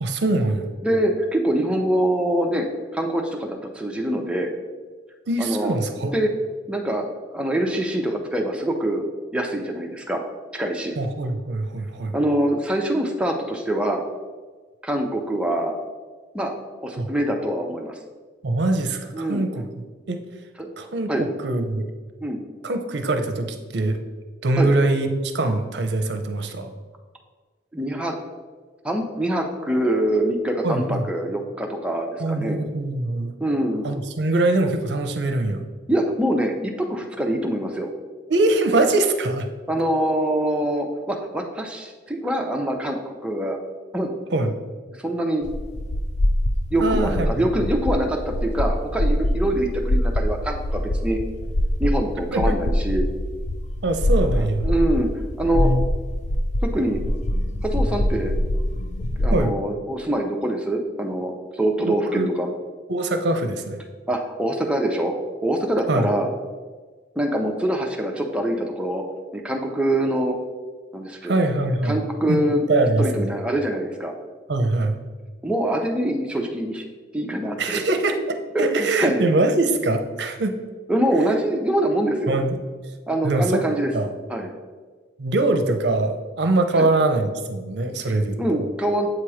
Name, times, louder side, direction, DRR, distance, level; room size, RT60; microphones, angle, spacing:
voice 1, 0.0-0.7 5.3-6.1 11.0-12.2 17.0-17.1 18.4-19.6 20.1-20.2 20.8-21.9 22.6-24.0 24.4-26.7 30.6-31.0 32.2-33.3 33.8-35.6 38.3-39.5 44.3-44.5 46.8-47.4 52.3-52.4 53.8-54.7 55.5-55.8 59.3-59.5 61.9-62.3 62.9-63.8 65.9-66.1 71.2-72.0 72.3-73.3 74.5-75.0 77.6-80.5 82.3-82.6 83.2-83.6 83.9-84.1 85.2-88.7, right 2 dB, 65° right, 6 dB, 0.6 m, -23 dB
voice 2, 0.8-2.7 2.9-4.5 5.4-6.3 6.7-7.0 7.3-9.0 9.3-10.2 10.5-10.9 12.1-14.0 14.8-15.8 16.3-16.6 16.8-18.0 19.1-19.4 20.6-20.7 21.1-21.3 22.2-22.4 24.6-24.7 27.7-28.1 28.8-32.6 33.4-33.9 35.9-37.9 39.7-43.6 43.9-44.1 45.0-45.5 46.7-51.2 51.8-53.1 54.4-55.1 55.4-55.7 56.6-57.0 57.6-58.3 59.2-62.5 64.1-65.1 65.4-66.3 67.2-69.0 69.3-70.4 70.9-71.3 71.8-72.6 73.0-74.1 75.4-76.8 77.1-77.8 78.5-79.2 80.9-82.4 83.1-83.9 84.3-84.5 86.7-86.9 88.4-89.1, right 1 dB, 5° right, 1 dB, 0.6 m, -24 dB
sound 1, 45.4-59.5, left 1 dB, 40° left, 0.4 m, -24 dB
7.6 x 3.0 x 4.8 m, 1.4 s
head